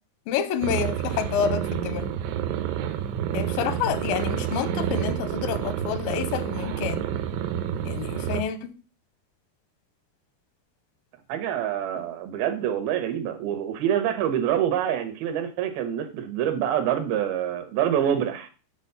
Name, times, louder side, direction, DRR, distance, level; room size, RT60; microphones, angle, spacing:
voice 1, 0.3-2.1 3.3-7.0 7.8-8.7 12.0-12.1, left 9 dB, 80° left, 2.1 m, -28 dB
sound 1, 0.6-8.4, right 10 dB, 90° right, 3.0 m, -29 dB
voice 2, 11.3-18.5, right 10 dB, 70° right, 2.8 m, -26 dB
7.4 x 4.1 x 6.8 m
omnidirectional pair, 4.9 m